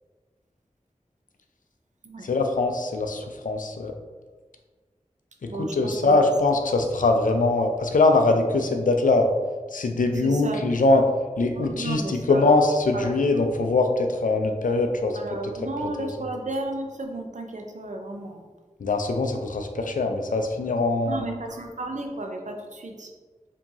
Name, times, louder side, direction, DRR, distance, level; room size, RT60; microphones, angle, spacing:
voice 1, 2.2-3.9 5.4-9.3 9.7-11.1 11.4-15.2 16.0-16.1 18.8-21.3, left 3 dB, 85° left, 4 dB, 0.4 m, -22 dB
voice 2, 5.5-6.2 10.2-10.6 10.9-11.0 11.5-12.6 12.9-13.1 15.1-18.4 21.0-23.1, right 2 dB, 65° right, 3 dB, 0.6 m, -33 dB
4.5 x 2.8 x 2.7 m, 1.4 s
wide cardioid pair, 40°, 13 cm